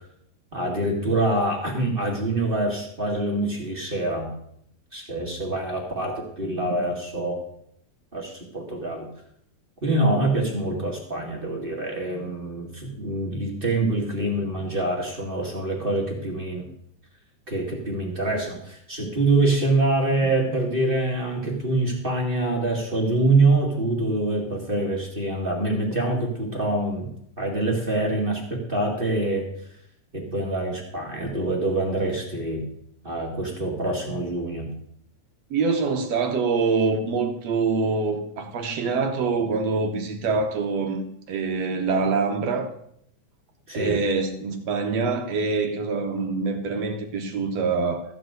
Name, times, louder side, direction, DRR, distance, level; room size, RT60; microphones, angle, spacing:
voice 1, 0.5-4.3 4.9-7.4 8.1-9.1 9.8-16.7 17.5-27.1 27.4-29.5 30.1-32.6 33.0-34.7 43.7-43.9, right 2 dB, 20° right, 1.6 m, -25 dB
voice 2, 35.5-41.0 41.3-42.7 43.7-48.0, right 4 dB, 65° right, 1.9 m, -25 dB
14.5 x 4.8 x 8.0 m
omnidirectional pair, 3.7 m